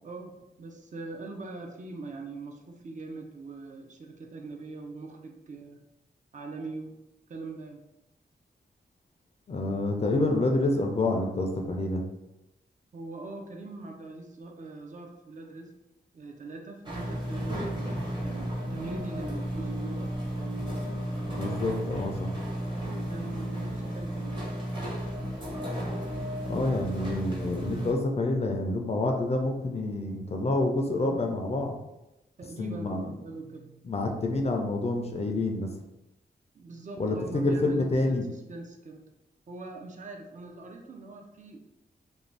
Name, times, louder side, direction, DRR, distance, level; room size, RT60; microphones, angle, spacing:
voice 1, 0.0-5.8 6.3-7.0 7.3-7.8 12.9-15.7 16.1-17.9 18.2-20.2 23.1-24.4 32.4-33.8 36.5-38.2 38.5-39.0 39.5-41.6, right 3 dB, 45° right, 3 dB, 0.4 m, -42 dB
voice 2, 9.5-12.0 21.3-22.3 26.5-31.8 32.6-33.1 33.8-35.7 37.0-38.2, left 2 dB, 35° left, 3 dB, 0.4 m, -28 dB
sound 1, 16.9-27.9, equal, 25° right, 0.8 m, -33 dB
2.5 x 2.2 x 3.2 m, 0.93 s
wide cardioid pair, 110°, 18 cm